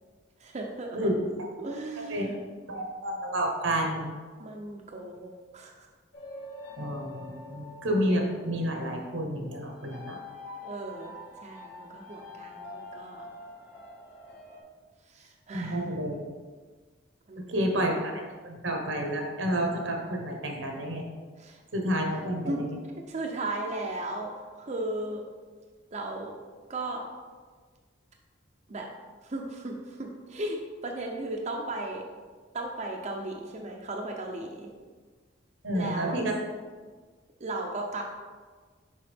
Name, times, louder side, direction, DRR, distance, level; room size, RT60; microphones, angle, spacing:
voice 1, 0.4-1.1 1.6-2.4 4.4-5.9 10.0-10.2 10.6-11.1 11.4-13.2 15.1-15.9 17.3-17.6 21.4-21.6 22.5-22.6 23.1-25.2 25.9-26.3 26.7-27.0 28.7-28.9 29.2-32.0 32.5-34.7 35.7-36.2 37.4-38.0, right 2 dB, 40° right, 0 dB, 0.6 m, -36 dB
voice 2, 2.7-4.1 6.8-10.2 15.5-16.2 17.5-21.0 21.7-22.7 35.6-36.4, equal, 85° right, 2 dB, 1.2 m, -30 dB
sound 1, 6.1-14.6, left 2 dB, 65° left, 1.9 m, -45 dB
6.7 x 4.8 x 3.5 m, 1.5 s
head